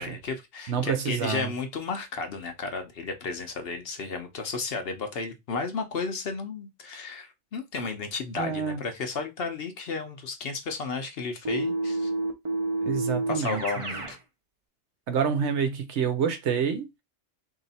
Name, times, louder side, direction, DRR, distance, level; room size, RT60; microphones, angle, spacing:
voice 1, 0.0-12.1 13.3-14.2, left 4 dB, 60° left, 0.9 m, -33 dB
voice 2, 0.7-1.5 8.4-8.8 12.8-13.6 15.1-16.9, right 7 dB, 70° right, 1.0 m, -27 dB
Keyboard (musical), 11.4-14.2, right 2 dB, 35° right, 0.6 m, -29 dB
3.1 x 2.8 x 4.0 m
omnidirectional pair, 1.2 m